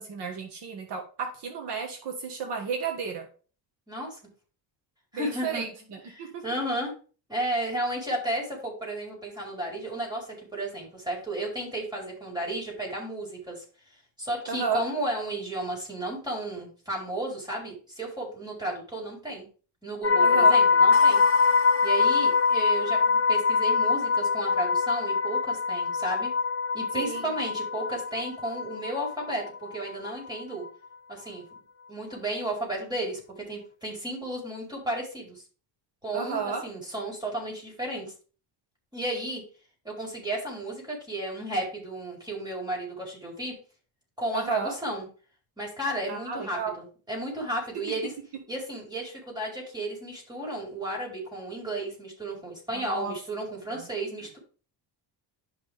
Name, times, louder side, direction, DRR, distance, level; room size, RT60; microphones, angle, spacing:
voice 1, 0.0-3.3 5.1-6.4 14.5-14.8 20.2-20.6 26.9-27.3 36.1-36.6 44.3-44.7 46.1-46.7 52.7-53.1 53.7-53.9, right 6 dB, 60° right, 3 dB, 1.7 m, -32 dB
voice 2, 3.9-4.2 5.1-5.7 6.1-6.9 7.3-13.6 14.2-19.4 19.8-21.2 21.8-26.3 26.7-30.6 31.1-31.4 31.9-35.4 36.0-38.1 38.9-39.4 39.8-43.5 44.2-45.1 45.6-48.1 48.5-54.4, right 1 dB, 10° right, -3 dB, 4.6 m, -33 dB
sound 1, 20.0-30.1 30.4-30.7, left 5 dB, 30° left, 0.9 m, -23 dB
11.5 x 5.8 x 3.6 m, 0.38 s
cardioid pair, 135°, 46 cm